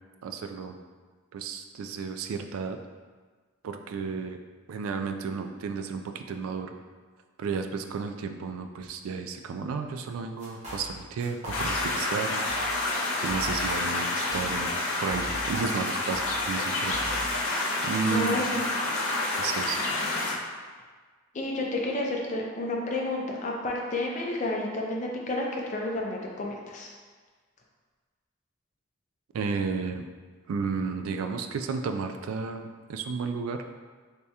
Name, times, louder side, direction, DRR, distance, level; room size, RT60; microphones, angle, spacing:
voice 1, 0.2-0.8 1.3-2.8 3.6-4.4 4.7-6.8 7.4-12.5 13.2-14.7 15.0-17.5 17.8-18.4 19.4-19.8 29.3-30.1 30.5-33.6, right 5 dB, 85° right, 6 dB, 0.3 m, -33 dB
sound 1, 10.4-10.9 11.2-11.9 12.2-12.7 13.0-13.7 14.0-15.6 15.8-17.4, equal, 30° right, 0.9 m, -39 dB
sound 2, 11.5-20.4, left 2 dB, 90° left, 0.5 m, -29 dB
voice 2, 18.1-18.6 21.3-26.9, left 2 dB, 35° left, -1 dB, 0.5 m, -30 dB
3.4 x 3.3 x 2.8 m, 1.5 s
head